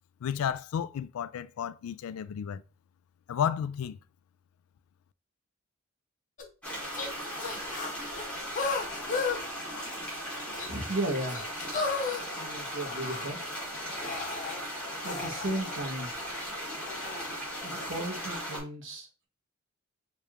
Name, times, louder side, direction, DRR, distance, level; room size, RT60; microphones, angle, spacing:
voice 1, 0.2-2.6 3.3-4.0, left 8 dB, 85° left, 0.3 m, -32 dB
sound 1, 6.4-6.5 6.9-7.1 7.4-9.4 9.7-10.2 10.5-10.7 11.3-13.3 13.7-14.6 15.0-17.3 17.7-18.0, left 4 dB, 40° left, 0.7 m, -35 dB
sound 2, 6.6-18.6, equal, 5° left, 1.8 m, -37 dB
voice 2, 10.6-11.4 12.3-13.5 15.0-16.1 17.6-19.3, right 1 dB, 60° right, 1.2 m, -35 dB
4.7 x 3.3 x 2.4 m
head